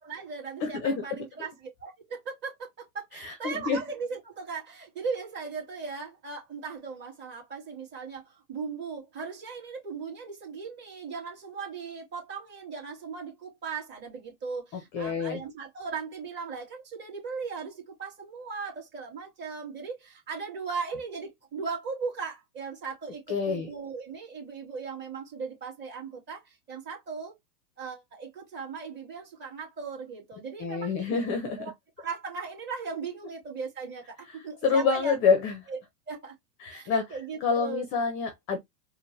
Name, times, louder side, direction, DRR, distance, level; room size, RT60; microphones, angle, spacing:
voice 1, 0.0-27.3 27.8-35.1 35.7-35.8 36.1-36.4 36.7-37.9, right 5 dB, 20° right, 2.3 m, -38 dB
voice 2, 0.6-1.0 3.2-3.8 14.9-15.4 23.3-23.7 30.6-31.6 34.6-35.6 36.6-37.1 37.4-38.6, left 5 dB, 25° left, 0.7 m, -27 dB
4.3 x 2.2 x 3.2 m
hypercardioid pair, 135°, 49 cm